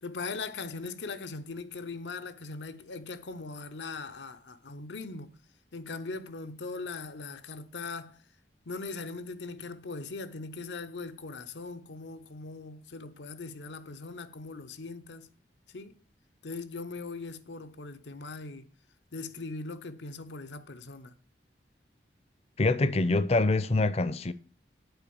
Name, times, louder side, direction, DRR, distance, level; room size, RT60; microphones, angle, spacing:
voice 1, 0.0-5.4 5.7-8.2 8.7-15.3 15.7-16.0 16.4-18.7 19.1-21.1, left 3 dB, 85° left, 0.8 m, -40 dB
voice 2, 22.6-24.3, left 2 dB, 35° left, 0.5 m, -25 dB
8.0 x 4.6 x 6.9 m
head